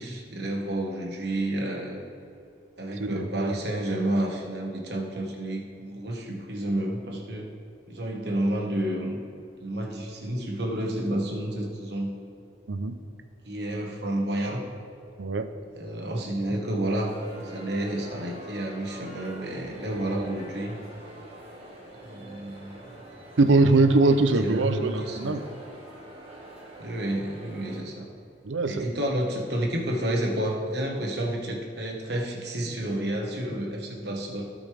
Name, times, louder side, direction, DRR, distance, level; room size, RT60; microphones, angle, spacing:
voice 1, 0.0-2.0 2.8-7.5 7.9-9.2 9.6-12.1 13.4-14.6 15.8-20.8 22.0-22.8 24.4-25.3 26.8-28.1 28.6-34.4, right 1 dB, 60° right, 0 dB, 1.4 m, -30 dB
voice 2, 3.0-3.5 12.7-13.0 15.2-15.5 23.4-25.4 28.4-28.9, right 3 dB, 80° right, 9 dB, 0.6 m, -22 dB
sound 1, 17.0-27.8, right 1 dB, 30° right, 1.7 m, -45 dB
16.0 x 5.3 x 3.4 m, 2.6 s
head